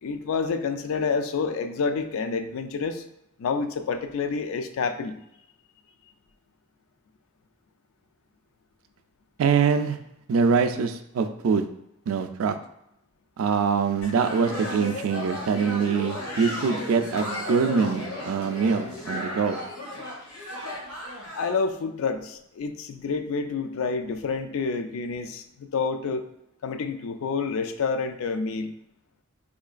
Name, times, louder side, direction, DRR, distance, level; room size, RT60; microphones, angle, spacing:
voice 1, 0.0-3.0 3.4-5.2 21.3-26.3 26.6-28.7, left 5 dB, 65° left, 9 dB, 0.3 m, -28 dB
voice 2, 9.4-10.0 10.3-11.6 12.1-12.5 13.4-19.6, right 5 dB, 65° right, 8 dB, 0.3 m, -24 dB
sound 1, 14.0-21.5, left 1 dB, 90° left, 1.4 m, -35 dB
3.8 x 3.0 x 2.4 m, 0.81 s
head